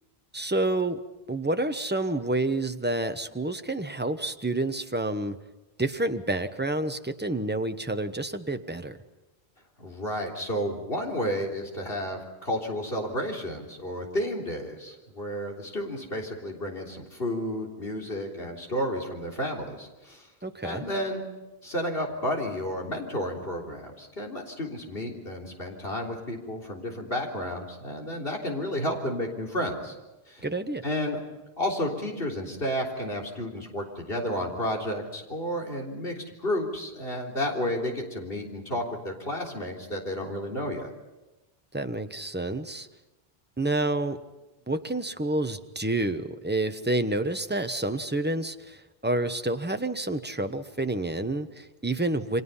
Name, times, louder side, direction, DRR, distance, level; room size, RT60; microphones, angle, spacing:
voice 1, 0.3-1.0 1.3-5.4 5.8-9.0 20.4-20.8 30.4-30.8 41.7-42.9 43.6-44.2 44.7-52.4, right 2 dB, 10° right, 8 dB, 1.0 m, -29 dB
voice 2, 9.8-20.3 20.6-21.2 21.6-29.9 30.3-30.5 30.8-31.2 31.6-40.9, equal, 65° left, 0 dB, 4.0 m, -31 dB
29.5 x 24.5 x 5.7 m, 1.1 s
omnidirectional pair, 1.1 m